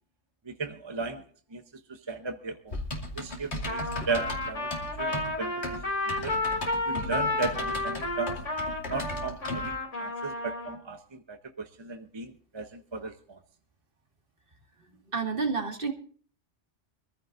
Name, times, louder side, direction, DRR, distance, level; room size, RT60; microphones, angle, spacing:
voice 1, 0.5-1.2 1.5-1.6 1.9-2.8 3.1-3.8 4.1-5.6 6.2-6.4 6.9-8.4 8.9-13.4, right 4 dB, 25° right, 7 dB, 0.8 m, -36 dB
Typing, 2.7-9.7, left 1 dB, 65° left, 2.7 m, -37 dB
Trumpet, 3.7-10.8, left 2 dB, 85° left, 3.6 m, -32 dB
voice 2, 14.9-15.9, right 5 dB, 45° right, 3 dB, 2.2 m, -30 dB
24.0 x 15.0 x 2.6 m, 0.43 s
omnidirectional pair, 1.2 m